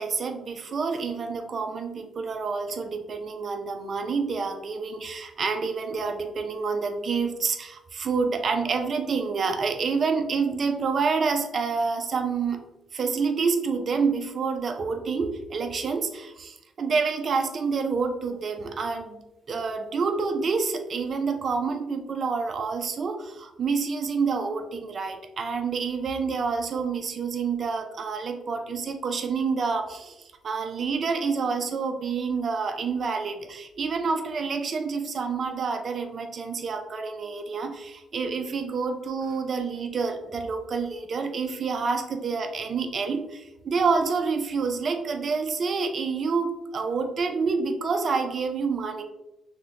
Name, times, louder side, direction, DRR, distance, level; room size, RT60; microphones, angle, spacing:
voice 1, 0.0-12.6 12.9-19.2 19.5-49.0, right 5 dB, 50° right, 6 dB, 0.4 m, -28 dB
2.8 x 2.1 x 3.6 m, 0.91 s
cardioid pair, 90°, 0 cm